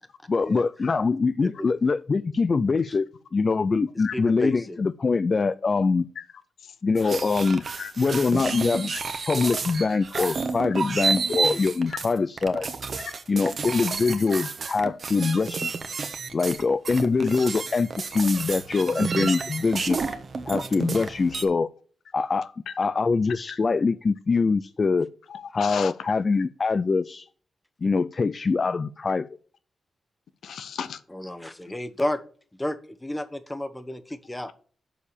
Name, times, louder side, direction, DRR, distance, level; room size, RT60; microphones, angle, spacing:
voice 1, 0.3-6.1 6.8-7.6 8.0-8.9 9.2-12.7 13.3-15.7 16.3-20.2 20.5-21.7 22.1-22.5 22.8-25.1 25.5-27.3 27.8-29.4, left 4 dB, 45° left, 0.4 m, -24 dB
voice 2, 4.1-4.8 31.1-32.2 32.6-34.5, left 1 dB, 15° left, 1.1 m, -31 dB
sound 1, 7.0-21.5, right 4 dB, 55° right, 1.1 m, -30 dB
voice 3, 25.3-25.9 30.4-31.0, left 7 dB, 80° left, 0.7 m, -34 dB
7.2 x 4.7 x 6.8 m
cardioid pair, 70°, 0 cm